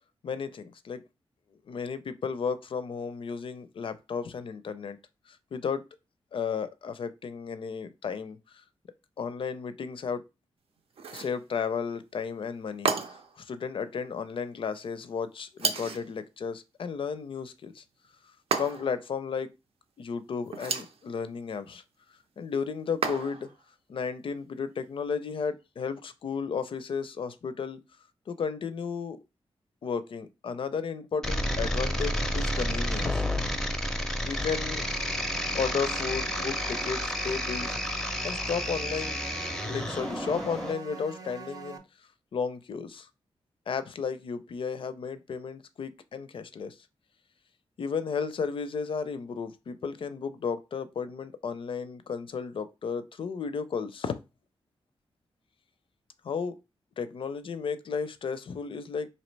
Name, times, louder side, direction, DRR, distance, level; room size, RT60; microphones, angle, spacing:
voice 1, 0.2-1.0 1.7-5.0 5.3-5.8 6.3-8.6 9.2-10.2 11.1-17.8 18.5-19.5 20.0-21.8 22.4-23.5 23.9-27.8 28.3-29.2 29.8-33.3 34.2-34.8 35.5-37.8 38.2-39.2 39.6-41.8 42.3-43.1 43.7-46.8 47.8-54.1 56.2-56.5 57.0-59.1, left 6 dB, 60° left, 0.5 m, -33 dB
sound 1, 11.0-11.4 12.8-13.4 15.6-16.1 18.5-19.0 20.5-21.0 23.0-23.5, right 5 dB, 75° right, 0.6 m, -31 dB
sound 2, 31.2-40.7, left 1 dB, 5° left, 0.5 m, -31 dB
sound 3, 34.8-41.8, right 5 dB, 35° right, 0.6 m, -44 dB
4.0 x 2.8 x 3.2 m
wide cardioid pair, 95°, 10 cm